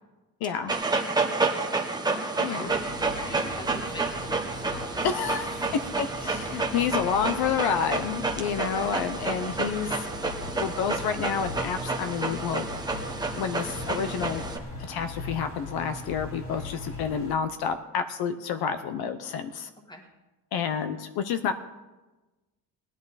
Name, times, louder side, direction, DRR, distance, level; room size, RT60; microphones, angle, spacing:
voice 1, 0.4-0.7 2.4-2.7 5.0-5.6 6.0-10.1 10.6-12.7 13.4-14.4 14.9-19.7 20.5-21.5, left 7 dB, 65° left, 9 dB, 0.8 m, -29 dB
Dog, 0.7-14.6, right 3 dB, 10° right, 0.9 m, -30 dB
voice 2, 1.7-5.1 8.7-8.9 19.9-20.1, equal, 10° left, 2 dB, 1.7 m, -43 dB
sound 1, 2.7-17.3, left 2 dB, 30° left, 2.2 m, -40 dB
18.5 x 11.0 x 4.1 m, 1.1 s
cardioid pair, 175°, 41 cm